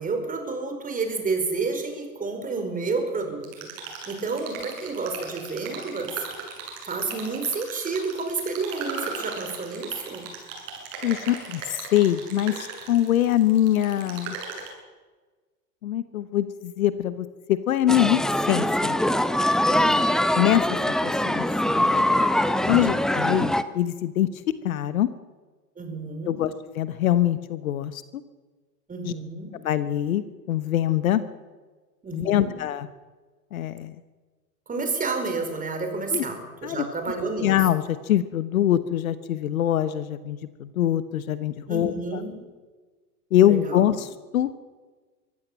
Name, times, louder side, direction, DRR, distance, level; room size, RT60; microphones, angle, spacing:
voice 1, 0.0-3.5 4.1-6.1 6.8-10.3 19.7-20.0 22.5-22.9 25.8-26.4 28.9-29.5 32.0-32.6 34.7-37.6 41.7-42.3 43.4-43.9, right 4 dB, 15° right, 5 dB, 5.0 m, -30 dB
sound 1, 3.4-14.7, right 5 dB, 50° right, 7.6 m, -38 dB
voice 2, 11.0-14.4 15.8-18.2 18.5-19.0 20.3-20.6 21.0-21.8 22.7-24.3 24.6-25.1 26.2-28.2 29.0-29.1 29.5-31.2 32.1-32.9 33.5-34.0 36.1-36.2 36.6-36.8 37.4-42.2 43.3-44.5, left 12 dB, 60° left, 14 dB, 1.2 m, -24 dB
sound 2, 17.9-23.6, left 1 dB, ahead, 0.6 m, -23 dB
24.0 x 16.0 x 7.6 m, 1.3 s
figure-of-eight pair, 90°, 47 cm